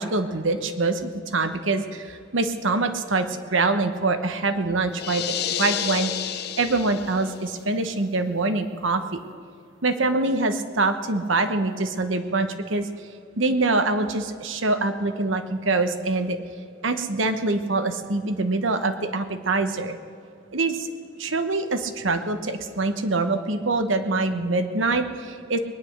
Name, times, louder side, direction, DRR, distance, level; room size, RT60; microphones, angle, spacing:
voice 1, 0.0-5.2 5.6-9.2 9.8-12.9 13.4-16.4 16.8-20.0 20.5-20.9 21.2-25.6, right 3 dB, 80° right, 8 dB, 1.1 m, -24 dB
sound 1, 4.9-7.4, left 9 dB, 50° left, 0.6 m, -30 dB
20.5 x 10.0 x 6.5 m, 2.5 s
head